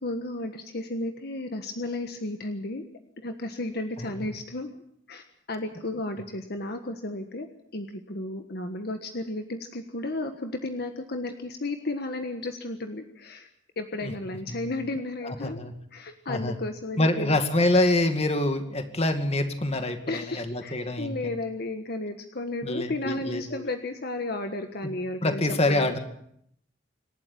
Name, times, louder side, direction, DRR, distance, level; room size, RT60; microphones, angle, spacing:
voice 1, 0.0-2.8 3.2-4.7 5.1-7.5 7.7-13.5 13.8-15.6 15.9-17.4 20.0-26.0, left 2 dB, 55° left, 6 dB, 1.5 m, -33 dB
voice 2, 15.2-15.7 16.3-16.6 17.0-21.1 22.6-23.6 24.8-24.9 25.2-26.0, left 1 dB, 35° left, 7 dB, 2.2 m, -26 dB
27.0 x 12.0 x 8.7 m, 0.73 s
head